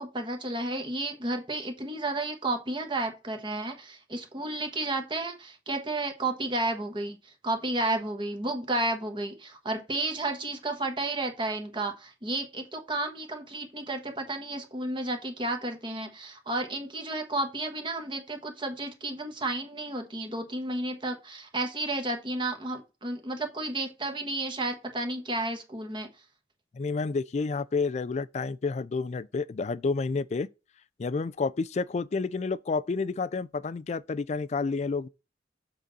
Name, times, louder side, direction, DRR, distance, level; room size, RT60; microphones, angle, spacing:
voice 1, 0.0-7.2 7.4-26.1, right 2 dB, 30° right, 1.2 m, -32 dB
voice 2, 26.7-30.5 31.0-35.1, left 4 dB, 40° left, 0.3 m, -30 dB
7.5 x 3.9 x 4.1 m
head